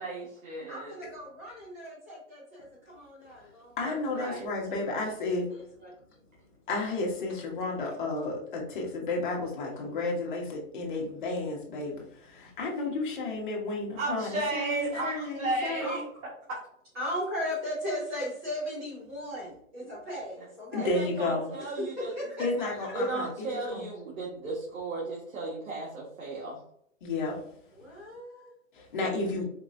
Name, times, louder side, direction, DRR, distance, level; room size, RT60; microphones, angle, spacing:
voice 1, 0.0-0.9 3.8-4.4 14.0-16.0 20.8-22.1 22.9-26.6, right 2 dB, 80° right, -4 dB, 1.4 m, -34 dB
voice 2, 0.7-3.8 4.2-4.3 4.9-5.9 15.8-16.0 16.9-20.9 21.6-21.7 22.2-22.9 27.7-28.5, equal, 10° right, -6 dB, 0.8 m, -37 dB
voice 3, 3.8-5.5 6.7-16.0 20.7-21.5 22.4-23.8 27.0-27.4 28.9-29.4, left 2 dB, 35° left, -2 dB, 1.1 m, -32 dB
4.6 x 2.8 x 2.5 m, 0.69 s
hypercardioid pair, 175°, 41 cm